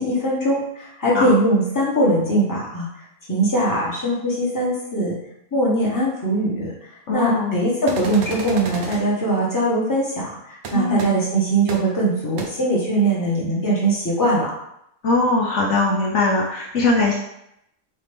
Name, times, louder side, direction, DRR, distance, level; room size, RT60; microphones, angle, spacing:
voice 1, 0.0-2.9 3.3-5.2 5.5-14.5, right 1 dB, 15° left, -6 dB, 1.1 m, -21 dB
voice 2, 7.1-7.6 10.7-11.1 15.0-17.1, left 3 dB, 65° left, -3 dB, 1.0 m, -20 dB
sound 1, 7.9-9.0 10.6-10.7 11.0-11.1 11.7-11.8 12.4-12.5, right 4 dB, 65° right, 0.9 m, -32 dB
4.4 x 2.8 x 3.4 m, 0.79 s
omnidirectional pair, 1.3 m